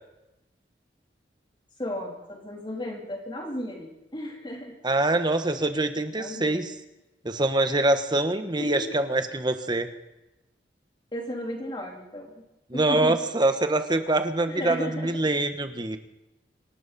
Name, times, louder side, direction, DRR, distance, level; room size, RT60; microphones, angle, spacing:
voice 1, 1.8-4.8 6.1-6.7 8.6-9.0 11.1-12.3 12.7-13.2 14.5-15.2, left 1 dB, 25° left, 0 dB, 3.7 m, -35 dB
voice 2, 4.8-6.7 7.2-9.9 12.7-16.0, right 2 dB, 25° right, 8 dB, 1.3 m, -24 dB
27.0 x 12.5 x 4.3 m, 0.95 s
head